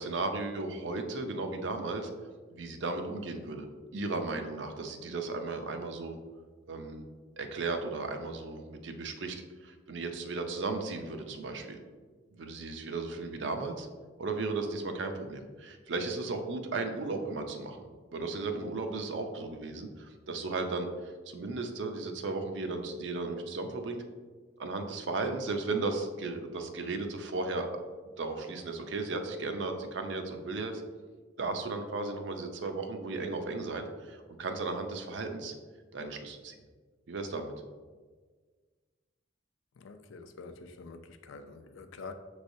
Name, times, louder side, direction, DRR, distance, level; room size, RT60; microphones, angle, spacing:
voice 1, 0.0-2.1 2.5-6.2 6.7-7.0 7.4-11.8 12.4-13.9 14.2-24.0 24.6-27.7 28.2-30.8 31.4-35.5 35.9-36.6 37.1-37.5, right 3 dB, 70° right, 5 dB, 0.5 m, -35 dB
voice 2, 39.7-42.1, left 4 dB, 90° left, 8 dB, 0.4 m, -46 dB
6.3 x 3.2 x 2.6 m, 1.5 s
head